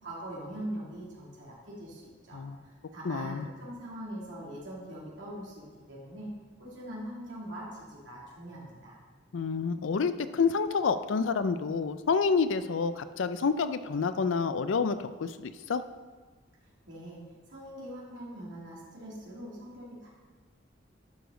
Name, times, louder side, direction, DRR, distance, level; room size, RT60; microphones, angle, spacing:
voice 1, 0.0-6.3 6.6-9.0 16.9-17.2 17.5-20.1, right 1 dB, 75° right, -5 dB, 2.4 m, -42 dB
voice 2, 3.0-3.5 9.3-15.8, left 5 dB, 85° left, 12 dB, 0.5 m, -28 dB
11.5 x 5.1 x 3.8 m, 1.4 s
head